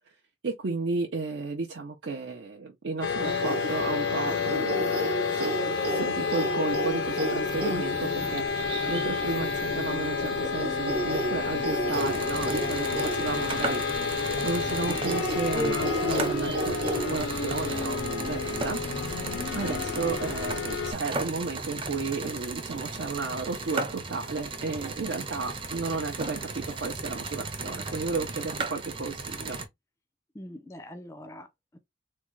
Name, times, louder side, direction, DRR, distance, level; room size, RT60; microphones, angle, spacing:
voice 1, 0.4-14.1 14.4-16.8 17.1-18.8 19.5-29.6, right 3 dB, 75° right, 0.6 m, -33 dB
sound 1, 3.0-20.9, left 5 dB, 85° left, 0.5 m, -30 dB
sound 2, 3.2-17.9, right 2 dB, 60° right, 0.9 m, -34 dB
sound 3, 11.9-29.7, right 3 dB, 30° right, 0.6 m, -36 dB
voice 2, 30.3-31.8, left 1 dB, 15° left, 0.4 m, -44 dB
3.6 x 2.2 x 3.0 m
head